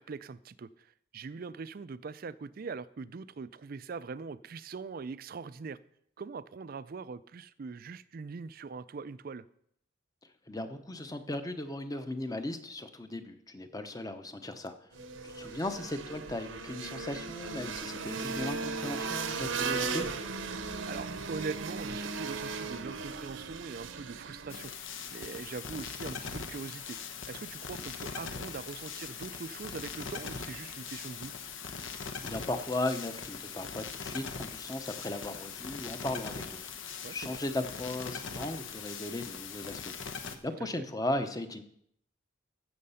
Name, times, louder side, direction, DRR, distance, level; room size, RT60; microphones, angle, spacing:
voice 1, 0.0-5.8 6.2-9.5 18.2-18.5 20.9-24.7 25.1-27.0 27.3-31.3 37.0-37.4 40.6-40.7, right 4 dB, 45° right, 0.4 m, -42 dB
voice 2, 10.5-14.7 15.2-20.1 32.2-40.2 40.4-41.6, left 1 dB, 20° left, 0.8 m, -37 dB
sound 1, 14.9-24.7, right 4 dB, 70° right, 0.9 m, -37 dB
sound 2, 24.5-40.4, left 6 dB, 70° left, 1.0 m, -41 dB
15.0 x 6.6 x 5.6 m
head